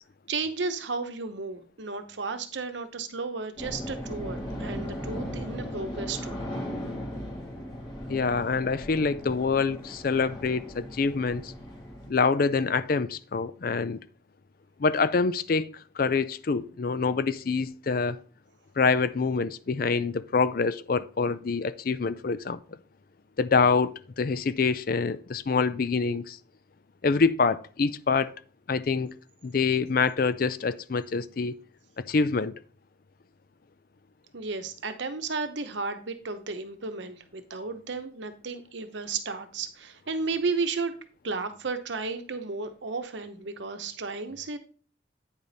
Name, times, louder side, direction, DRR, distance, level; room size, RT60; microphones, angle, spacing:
voice 1, 0.3-6.3 34.3-40.9 41.2-44.6, right 4 dB, 70° right, 0.9 m, -33 dB
sound 1, 3.6-12.1, equal, 25° left, 2.7 m, -37 dB
voice 2, 8.1-11.5 12.1-14.0 14.8-15.7 16.0-18.2 18.8-22.6 23.4-26.4 27.0-28.3 28.7-29.1 29.4-31.5 32.0-32.5, left 4 dB, 50° left, 0.4 m, -26 dB
8.9 x 5.0 x 4.0 m
head